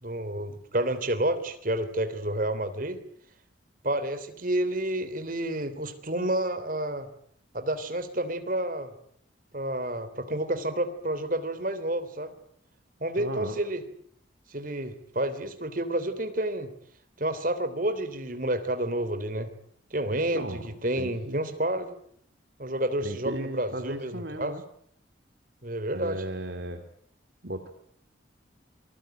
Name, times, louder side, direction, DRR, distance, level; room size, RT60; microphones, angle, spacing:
voice 1, 0.0-3.0 3.8-7.1 7.5-8.9 9.5-12.3 13.0-13.8 14.5-16.7 17.2-19.5 19.9-21.9 22.6-24.5 25.6-26.2, right 1 dB, 45° right, 10 dB, 3.3 m, -30 dB
voice 2, 13.2-13.6 20.1-21.5 23.0-24.6 25.9-26.8 27.4-27.7, right 1 dB, 60° right, 7 dB, 2.4 m, -36 dB
27.0 x 20.5 x 9.2 m, 0.68 s
head